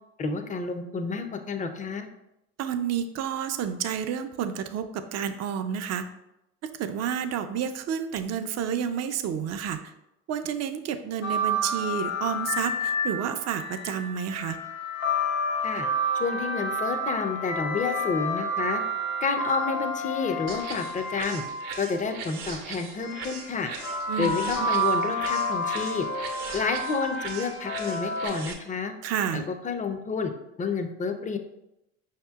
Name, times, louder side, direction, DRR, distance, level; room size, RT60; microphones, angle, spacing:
voice 1, 0.2-2.1 15.6-15.9 16.1-18.8 19.2-21.4 21.8-23.7 24.2-26.1 26.5-28.9 29.3-30.3 30.6-31.4, left 4 dB, 20° left, 7 dB, 0.5 m, -30 dB
voice 2, 2.6-6.1 6.8-9.9 10.3-14.6 24.1-24.7 29.0-29.4, right 8 dB, 45° right, 9 dB, 0.5 m, -30 dB
sound 1, 11.2-22.1 23.0-28.3, equal, 90° left, 0.9 m, -30 dB
sound 2, 20.5-28.5, right 5 dB, 65° right, 0.8 m, -40 dB
5.4 x 2.8 x 2.3 m, 0.88 s
hypercardioid pair, 65°, 37 cm